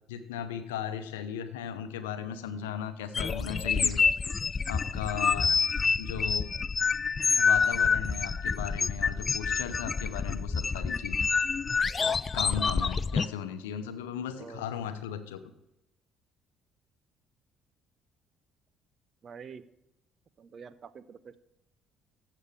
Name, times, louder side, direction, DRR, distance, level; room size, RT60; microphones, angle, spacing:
voice 1, 0.1-4.0 4.7-5.5 6.0-6.5 7.4-11.3 12.3-15.4, left 8 dB, 75° left, 10 dB, 0.8 m, -36 dB
sound 1, 3.1-13.3, left 5 dB, 35° left, 0.3 m, -27 dB
voice 2, 19.2-19.7 20.4-21.4, right 6 dB, 45° right, 16 dB, 0.6 m, -46 dB
14.5 x 6.7 x 3.3 m, 0.87 s
figure-of-eight pair, 50°, 0 cm